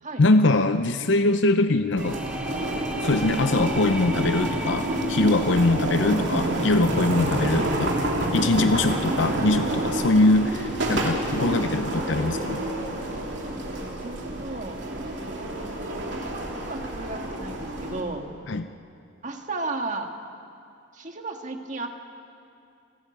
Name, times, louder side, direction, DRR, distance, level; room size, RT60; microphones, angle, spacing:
voice 1, 0.2-2.2 3.0-7.9 8.3-12.6 18.5-18.7, left 2 dB, 70° left, 9 dB, 0.7 m, -22 dB
sound 1, 2.0-7.6, right 1 dB, 5° right, 1.2 m, -38 dB
sound 2, 2.0-18.0, right 1 dB, 65° right, 3.0 m, -28 dB
voice 2, 14.0-14.8 15.8-18.3 19.2-20.1 20.9-21.9, right 3 dB, 40° right, 4 dB, 1.7 m, -35 dB
29.5 x 13.0 x 9.1 m, 2.5 s
head